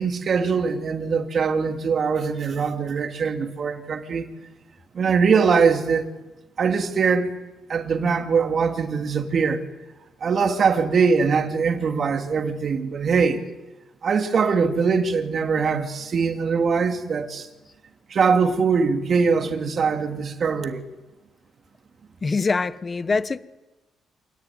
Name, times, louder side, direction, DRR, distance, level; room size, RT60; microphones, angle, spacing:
voice 1, 0.0-4.3 4.9-6.1 6.6-7.4 7.7-9.6 10.2-13.4 14.0-17.5 18.1-20.8, right 5 dB, 50° right, 2.8 m, -22 dB
voice 2, 22.2-23.4, left 4 dB, 30° left, 1.1 m, -23 dB
27.0 x 19.5 x 9.5 m
cardioid pair, 90°, 0 cm